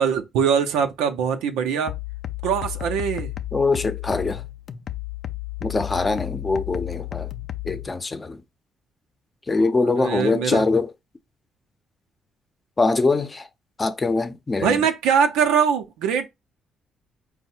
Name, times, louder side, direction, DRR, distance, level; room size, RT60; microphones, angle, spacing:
voice 1, 0.0-1.9 2.4-3.3 9.8-10.6 14.6-16.3, right 7 dB, 90° right, 0.6 m, -22 dB
sound 1, 1.9-7.9, left 14 dB, 60° left, 0.4 m, -32 dB
voice 2, 3.5-4.4 5.6-7.3 7.7-8.4 9.5-10.9 12.8-13.4 13.8-14.8, left 3 dB, 30° left, 0.7 m, -23 dB
4.7 x 2.1 x 4.3 m
supercardioid pair, 65°, 0 cm